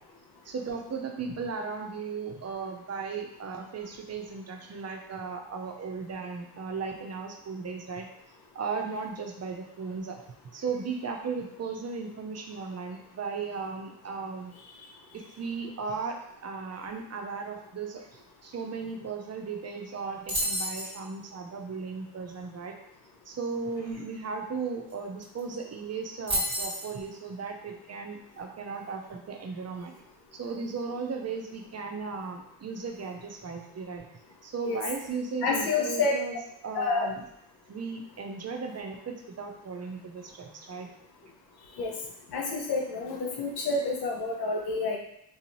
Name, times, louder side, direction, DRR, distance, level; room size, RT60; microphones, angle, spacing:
voice 1, 0.4-8.1 8.5-10.2 10.5-14.5 15.1-22.8 23.3-29.9 30.3-34.1 34.4-36.4 36.6-37.2 37.7-40.9, right 5 dB, 40° right, 3 dB, 0.6 m, -36 dB
sound 1, 20.3-20.9 24.9-25.0 25.2-25.5 26.3-26.9, equal, 15° right, 1.4 m, -30 dB
voice 2, 35.4-36.1 36.7-37.1 41.8-41.9 42.3-45.0, left 3 dB, 75° left, 0 dB, 0.9 m, -28 dB
3.9 x 2.8 x 2.7 m, 0.77 s
cardioid pair, 75°, 39 cm